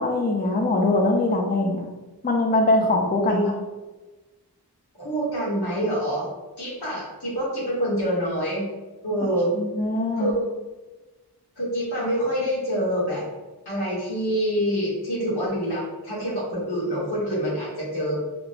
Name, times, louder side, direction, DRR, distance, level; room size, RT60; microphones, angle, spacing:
voice 1, 0.0-1.9 2.2-3.4 9.6-10.3, left 2 dB, 25° left, 2 dB, 0.4 m, -22 dB
voice 2, 5.0-6.3 6.6-8.6 9.0-9.5 10.2-10.5 11.6-13.2 13.6-18.2, equal, 80° left, -7 dB, 1.2 m, -26 dB
2.8 x 2.0 x 2.5 m, 1.2 s
wide cardioid pair, 40°, 39 cm